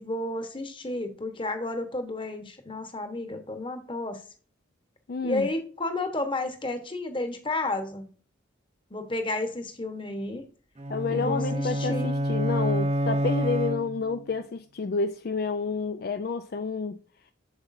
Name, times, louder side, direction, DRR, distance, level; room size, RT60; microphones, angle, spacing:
voice 1, 0.0-4.2 5.2-8.0 8.9-10.4 11.1-12.1, left 2 dB, 25° left, 1.1 m, -32 dB
voice 2, 5.1-5.5 10.9-17.0, left 4 dB, 50° left, 0.4 m, -29 dB
sound 1, 10.8-14.3, equal, 35° right, 0.7 m, -28 dB
8.0 x 7.1 x 2.6 m
head